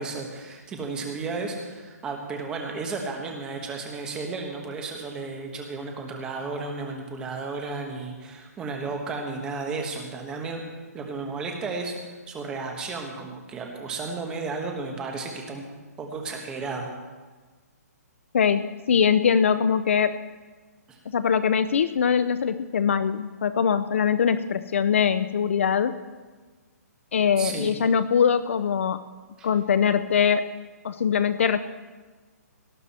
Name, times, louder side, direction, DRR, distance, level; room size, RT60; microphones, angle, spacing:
voice 1, 0.0-10.6 10.9-15.6 16.0-16.9 20.9-21.0 27.4-27.7 29.4-29.5, right 4 dB, 10° right, 2 dB, 1.3 m, -33 dB
voice 2, 18.3-20.2 21.1-26.0 27.1-29.0 29.4-30.5 30.8-31.6, left 7 dB, 50° left, 12 dB, 0.6 m, -22 dB
18.0 x 12.0 x 4.3 m, 1.4 s
hypercardioid pair, 175°, 9 cm